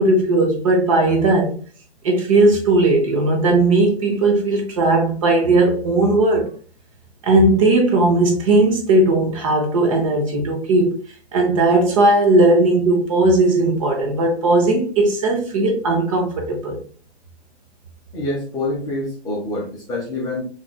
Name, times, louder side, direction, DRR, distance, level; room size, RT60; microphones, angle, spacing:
voice 1, 0.0-1.6 2.0-6.5 7.2-11.0 11.3-16.8, right 2 dB, 30° right, 0.8 m, -17 dB
voice 2, 18.1-20.4, left 2 dB, 10° left, 0.7 m, -26 dB
3.9 x 3.1 x 2.2 m
figure-of-eight pair, 120°, 33 cm